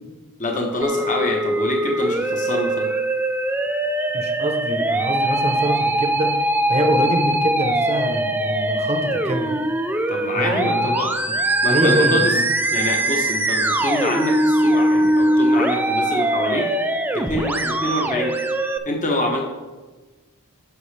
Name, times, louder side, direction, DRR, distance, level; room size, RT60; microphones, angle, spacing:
voice 1, 0.4-2.9 10.1-11.1 11.6-12.2 12.7-16.7 17.1-18.3 18.9-19.4, left 1 dB, 35° left, 1 dB, 1.0 m, -25 dB
Musical instrument, 0.8-18.8, right 1 dB, 10° right, 0.4 m, -21 dB
voice 2, 4.1-6.4 6.7-9.5 10.3-11.4 11.7-12.4, right 1 dB, 30° right, 4 dB, 0.8 m, -24 dB
10.5 x 6.5 x 3.3 m, 1.2 s
head